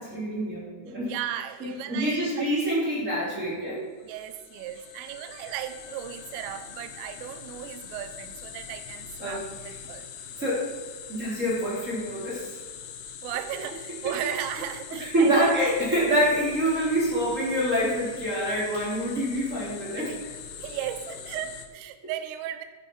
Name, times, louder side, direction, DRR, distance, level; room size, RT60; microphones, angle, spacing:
voice 1, 0.0-1.1 1.6-3.8 9.2-9.4 10.4-10.7 11.1-12.6 15.0-20.1, equal, 15° right, -6 dB, 3.4 m, -26 dB
voice 2, 1.0-2.5 4.0-10.1 13.2-15.5 20.0-20.2 20.6-22.7, right 11 dB, 90° right, 9 dB, 3.4 m, -36 dB
sound 1, 3.9-21.7, left 8 dB, 80° left, 2.1 m, -43 dB
13.0 x 10.0 x 4.8 m, 1.5 s
omnidirectional pair, 5.7 m